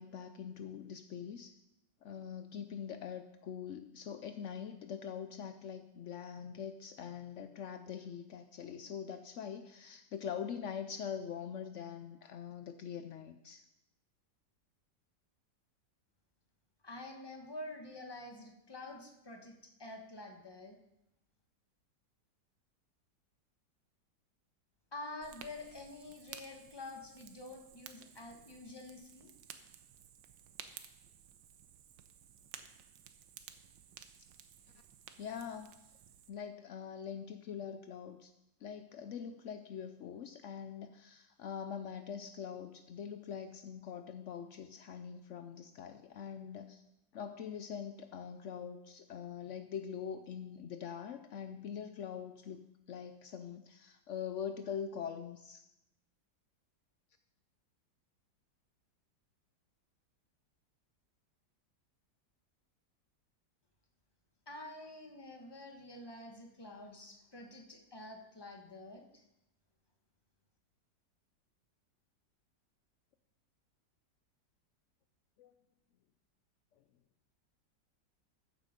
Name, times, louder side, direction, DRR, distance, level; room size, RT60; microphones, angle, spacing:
voice 1, 0.0-1.5 2.0-13.6 35.2-35.7 36.3-38.3 38.6-46.8 47.1-55.6 75.4-75.5, left 7 dB, 80° left, 9 dB, 0.6 m, -43 dB
voice 2, 16.8-20.8 24.9-29.3 64.5-69.2, left 2 dB, 15° left, 3 dB, 1.1 m, -48 dB
Fire, 25.2-36.3, right 9 dB, 85° right, 1.5 m, -55 dB
14.0 x 7.7 x 5.2 m, 0.88 s
omnidirectional pair, 1.9 m